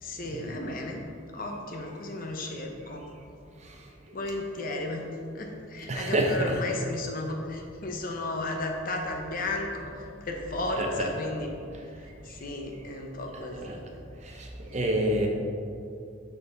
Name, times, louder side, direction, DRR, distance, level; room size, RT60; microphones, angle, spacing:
voice 1, 0.0-1.0 1.3-3.0 4.1-5.1 5.3-11.5 12.2-13.9, left 2 dB, 45° left, 2 dB, 0.7 m, -34 dB
voice 2, 5.9-6.5 10.8-11.1 13.6-13.8 14.3-15.3, right 1 dB, 35° right, 1 dB, 0.7 m, -28 dB
6.0 x 5.9 x 3.9 m, 2.5 s
head